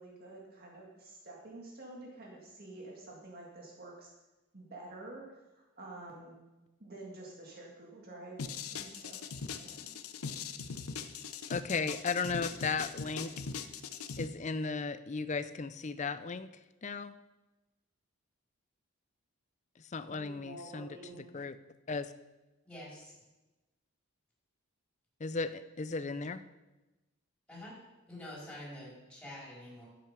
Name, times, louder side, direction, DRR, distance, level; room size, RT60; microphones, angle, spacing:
voice 1, 0.0-4.1 4.5-6.4 6.8-9.2 9.5-9.9 20.1-21.3, right 2 dB, 45° right, -2 dB, 1.9 m, -49 dB
sound 1, 8.4-14.3, left 5 dB, 80° left, 0.8 m, -40 dB
voice 2, 11.5-13.3 14.2-16.5 16.8-17.2 19.9-20.9 21.3-21.6 21.9-22.1 25.2-26.4, left 4 dB, 30° left, 13 dB, 0.4 m, -35 dB
voice 3, 22.6-23.1 27.5-27.8 28.1-29.9, left 1 dB, 5° left, -7 dB, 4.6 m, -47 dB
12.0 x 8.6 x 5.1 m, 1.1 s
head